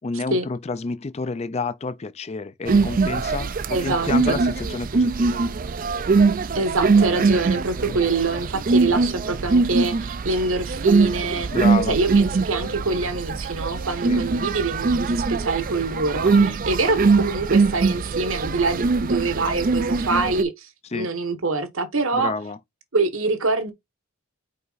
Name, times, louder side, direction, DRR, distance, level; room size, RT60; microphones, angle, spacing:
voice 1, 0.0-5.4 7.9-8.0 11.5-12.0 14.1-14.2 16.4-16.6 20.9-21.1 22.1-22.6, left 4 dB, 30° left, 0.4 m, -29 dB
sound 1, 2.7-20.4, right 4 dB, 40° right, 0.4 m, -22 dB
voice 2, 3.7-4.4 6.5-11.5 11.9-22.3 22.9-23.7, right 3 dB, 65° right, 1.3 m, -25 dB
5.4 x 4.9 x 4.0 m
head